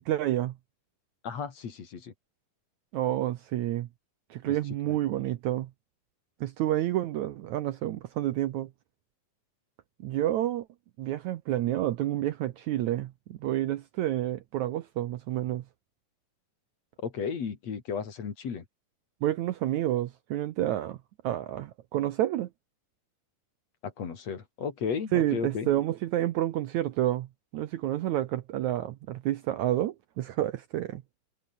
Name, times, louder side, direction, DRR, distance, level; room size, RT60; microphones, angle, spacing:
voice 1, 0.1-0.5 2.9-3.9 4.3-5.7 6.4-8.7 10.0-10.7 11.0-15.6 19.2-21.0 21.2-22.5 25.1-27.3 27.5-31.0, right 13 dB, 70° right, 1.9 m, -29 dB
voice 2, 1.2-2.1 4.5-4.6 4.9-5.0 17.0-18.6 23.8-25.7, left 6 dB, 50° left, 3.8 m, -34 dB
omnidirectional pair, 4.1 m